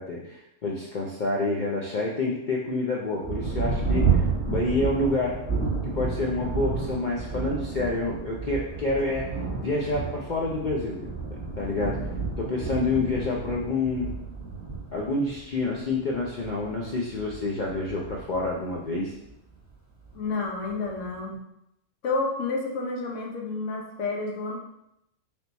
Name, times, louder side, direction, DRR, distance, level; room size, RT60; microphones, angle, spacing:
voice 1, 0.0-4.2 4.5-5.4 5.9-9.3 9.6-11.1 11.6-12.0 12.4-14.1 14.9-19.1, left 2 dB, 55° left, -3 dB, 0.5 m, -28 dB
Thunder, 3.2-19.3 20.1-20.2 20.7-21.1, right 5 dB, 10° right, 1.2 m, -31 dB
voice 2, 20.1-21.4 22.0-24.6, left 3 dB, 70° left, 0 dB, 1.2 m, -30 dB
3.5 x 2.9 x 3.9 m, 0.82 s
omnidirectional pair, 1.3 m